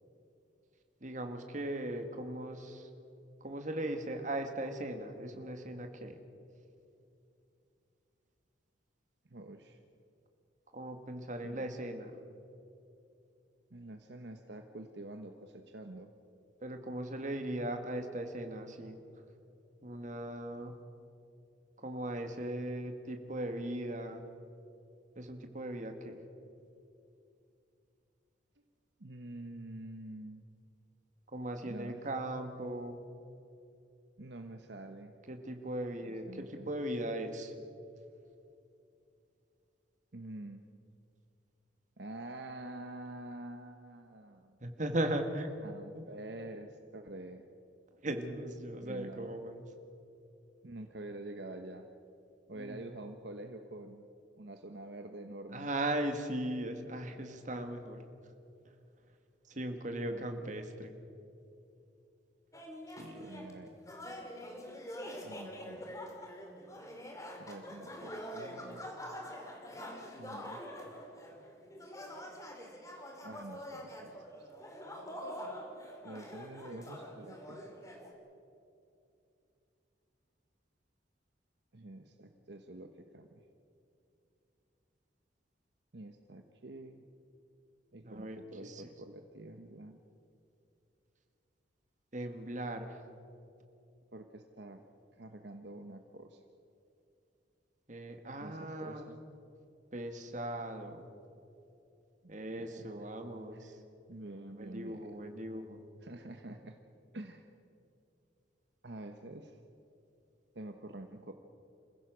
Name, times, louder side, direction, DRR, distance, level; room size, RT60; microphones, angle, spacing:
voice 1, 1.0-2.9 3.4-6.2 10.7-12.1 16.6-19.0 19.8-20.8 21.8-24.3 25.1-26.2 31.3-33.0 35.3-37.5 44.6-45.5 45.9-46.0 48.0-49.6 52.5-52.8 55.5-58.0 59.5-60.9 63.0-63.3 88.0-88.8 92.1-93.0 97.9-99.1 99.9-101.0 102.3-103.8 104.6-105.8, right 1 dB, 40° right, 6 dB, 1.8 m, -38 dB
voice 2, 9.3-9.8 11.4-11.7 13.7-16.1 28.6-28.7 29.0-30.4 31.7-32.0 34.2-35.1 36.1-36.7 40.1-40.7 42.0-44.6 45.6-47.5 48.7-49.3 50.6-51.9 52.5-54.1 54.4-55.7 60.1-60.5 63.1-63.7 65.2-66.0 67.4-68.9 70.2-70.7 73.2-74.5 76.0-77.6 81.7-83.4 85.9-87.1 87.9-90.0 94.1-94.8 95.2-96.4 98.4-99.2 102.2-102.3 102.6-102.9 103.5-103.7 104.1-105.2 106.0-106.8 107.1-107.5 108.8-109.6 110.5-111.3, right 1 dB, 60° right, 6 dB, 1.1 m, -47 dB
sound 1, 62.5-63.5 63.8-78.1, equal, 15° left, 2.5 m, -45 dB
27.5 x 16.0 x 6.2 m, 2.7 s
head